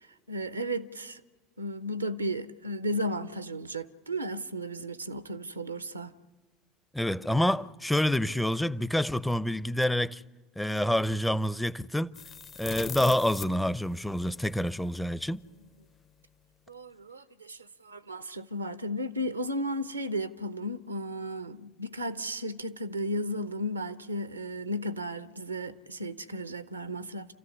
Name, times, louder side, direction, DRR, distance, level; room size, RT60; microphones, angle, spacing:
voice 1, 0.3-1.2 1.6-6.1 16.7-27.3, equal, 85° right, 0.8 m, -34 dB
voice 2, 6.9-10.2 10.6-12.1 12.6-15.4, left 1 dB, 5° left, 0.6 m, -27 dB
sound 1, 12.1-15.0, left 7 dB, 35° left, 0.8 m, -42 dB
28.5 x 14.5 x 9.7 m
figure-of-eight pair, 70°, 0 cm